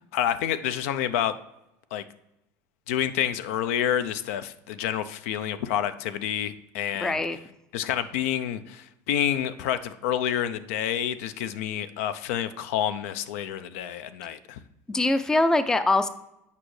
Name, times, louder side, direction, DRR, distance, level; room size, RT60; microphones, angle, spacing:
voice 1, 0.1-1.3 1.9-2.0 2.9-7.2 7.7-14.6, left 10 dB, 80° left, 13 dB, 0.5 m, -28 dB
voice 2, 7.0-7.4 14.9-16.1, left 2 dB, 10° left, 11 dB, 0.4 m, -23 dB
8.3 x 5.2 x 3.2 m, 0.86 s
supercardioid pair, 135°, 8 cm